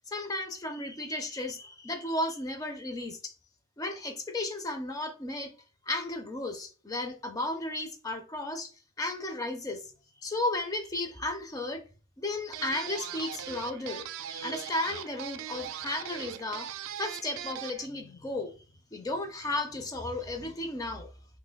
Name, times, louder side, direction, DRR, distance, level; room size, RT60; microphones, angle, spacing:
voice 1, 0.1-3.3 3.8-5.5 5.9-8.7 9.0-9.9 10.2-11.8 12.2-16.7 17.0-18.5 18.9-21.1, left 2 dB, 20° left, 0.5 m, -34 dB
sound 1, 12.5-17.9, right 9 dB, 90° right, 0.3 m, -40 dB
5.8 x 2.2 x 2.2 m
head